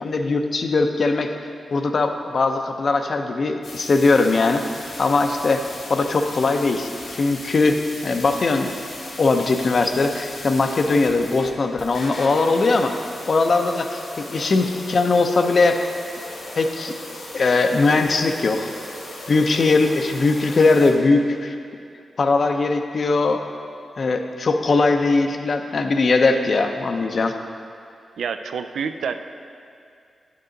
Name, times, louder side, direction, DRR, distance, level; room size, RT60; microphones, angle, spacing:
voice 1, 0.0-1.3 1.7-4.6 5.0-5.6 5.9-8.7 9.2-13.0 13.3-15.8 16.6-17.0 17.3-18.7 19.3-21.5 22.2-23.4 24.0-27.4, left 3 dB, 60° left, 6 dB, 0.6 m, -20 dB
sound 1, 3.6-20.9, left 2 dB, 75° left, 1.6 m, -37 dB
voice 2, 28.2-29.2, right 6 dB, 85° right, 9 dB, 0.3 m, -27 dB
9.9 x 6.6 x 3.9 m, 2.4 s
cardioid pair, 55°, 0 cm